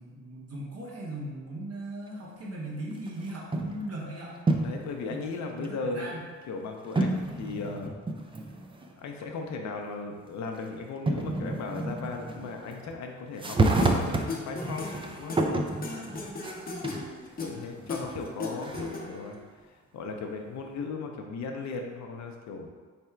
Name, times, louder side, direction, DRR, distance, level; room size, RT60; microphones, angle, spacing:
voice 1, 0.0-4.4 5.5-6.2 15.8-16.2 17.7-17.9, right 1 dB, 55° right, -4 dB, 1.4 m, -39 dB
sound 1, 3.1-3.9 4.3-4.9 5.6-5.7 7.0-8.9 9.2-9.3 10.5-10.6 11.1-12.9 13.3-17.1 17.6-19.2, right 2 dB, 20° right, 0.4 m, -30 dB
voice 2, 4.6-6.2 6.5-7.9 9.0-15.4 17.4-19.4 19.6-22.7, left 4 dB, 65° left, 3 dB, 0.7 m, -37 dB
sound 2, 13.8-19.3, left 3 dB, 30° left, 0.8 m, -37 dB
3.6 x 3.3 x 4.4 m, 1.5 s
cardioid pair, 90°, 30 cm